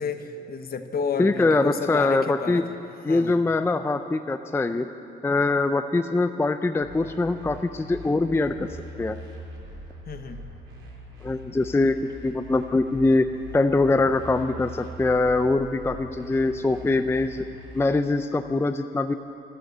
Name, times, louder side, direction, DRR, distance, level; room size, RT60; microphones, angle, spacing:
voice 1, 0.0-2.7 3.0-3.4 10.1-10.4, left 5 dB, 50° left, 8 dB, 1.1 m, -31 dB
voice 2, 1.2-2.6 3.0-4.9 5.2-8.7 9.0-9.2 11.2-12.0 12.2-13.3 13.5-17.4 17.7-19.2, left 3 dB, 10° left, 9 dB, 0.4 m, -23 dB
sound 1, 6.8-17.8, left 1 dB, 80° right, 2.9 m, -42 dB
12.5 x 12.0 x 7.8 m, 2.7 s
cardioid pair, 90°, 20 cm